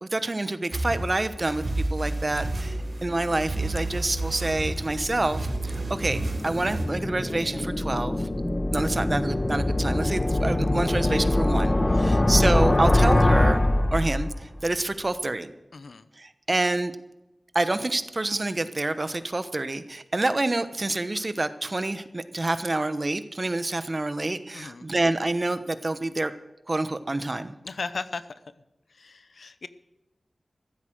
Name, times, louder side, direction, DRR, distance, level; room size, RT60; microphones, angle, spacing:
voice 1, 0.0-8.3 8.7-13.6 13.9-15.5 16.2-16.9 17.5-26.3 26.7-27.5, right 2 dB, 40° right, 12 dB, 1.0 m, -27 dB
sound 1, 0.7-6.9, right 2 dB, 80° right, 4.7 m, -31 dB
sound 2, 1.6-14.6, left 1 dB, 30° left, 1.1 m, -25 dB
voice 2, 11.9-12.2 15.7-16.1 24.5-24.9 27.6-28.2 29.0-29.7, left 4 dB, 90° left, 13 dB, 0.7 m, -36 dB
15.0 x 8.3 x 7.7 m, 0.97 s
wide cardioid pair, 60°, 0 cm